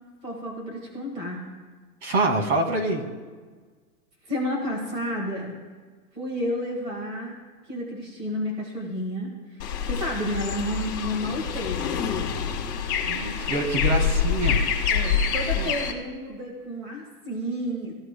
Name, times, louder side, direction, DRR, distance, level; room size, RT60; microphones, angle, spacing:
voice 1, 0.2-1.4 4.2-5.6 6.1-7.3 7.7-11.9 14.9-18.0, equal, 15° right, 0 dB, 1.8 m, -31 dB
voice 2, 2.0-3.1 13.1-14.6, right 2 dB, 45° right, 4 dB, 2.0 m, -25 dB
sound 1, 9.6-15.9, left 6 dB, 20° left, 1.7 m, -26 dB
23.0 x 14.5 x 2.3 m, 1.4 s
hypercardioid pair, 175°, 47 cm